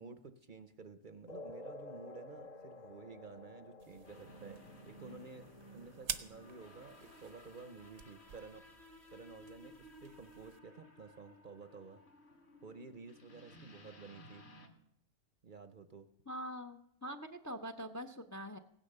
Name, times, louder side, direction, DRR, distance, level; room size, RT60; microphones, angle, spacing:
voice 1, 0.0-12.0 12.6-14.5 15.4-16.1, right 4 dB, 45° right, 10 dB, 0.8 m, -53 dB
sound 1, 1.3-8.3, left 2 dB, 40° left, 0.9 m, -53 dB
sound 2, 3.8-10.6, right 8 dB, 75° right, 1.2 m, -49 dB
sound 3, 4.0-14.7, equal, 55° left, 2.1 m, -57 dB
voice 2, 16.3-18.6, equal, 20° left, 6 dB, 0.5 m, -44 dB
16.5 x 10.5 x 6.6 m, 0.74 s
omnidirectional pair, 1.3 m